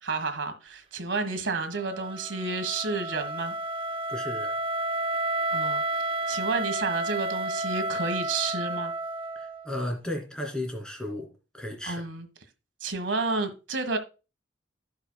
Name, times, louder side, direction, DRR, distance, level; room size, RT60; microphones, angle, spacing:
voice 1, 0.0-3.5 5.5-5.8 6.3-8.9 11.8-12.3 12.8-14.0, right 3 dB, 70° right, 1.5 m, -30 dB
Wind instrument woodwind instrument, 1.7-9.7, right 2 dB, 30° right, 0.4 m, -31 dB
voice 2, 4.1-4.6 9.3-11.3 11.5-12.0, left 1 dB, 5° left, 2.7 m, -34 dB
16.0 x 5.6 x 2.3 m
head